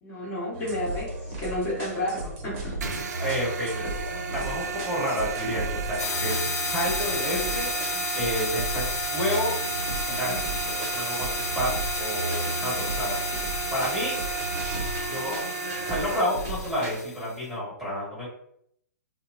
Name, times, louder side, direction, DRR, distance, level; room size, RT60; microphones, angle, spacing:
voice 1, 0.0-2.7, left 1 dB, 30° left, -8 dB, 1.3 m, -31 dB
sound 1, 0.5-17.0, right 1 dB, 35° right, 0.7 m, -35 dB
sound 2, 2.8-16.2, right 7 dB, 65° right, 0.4 m, -34 dB
voice 2, 3.2-3.9 4.3-7.7 8.1-9.5 9.9-14.2 15.1-15.4 15.8-18.3, equal, 5° right, -9 dB, 1.5 m, -30 dB
sound 3, 6.0-17.3, left 5 dB, 60° left, 0.5 m, -33 dB
2.6 x 2.1 x 2.5 m, 0.71 s
figure-of-eight pair, 120°, 10 cm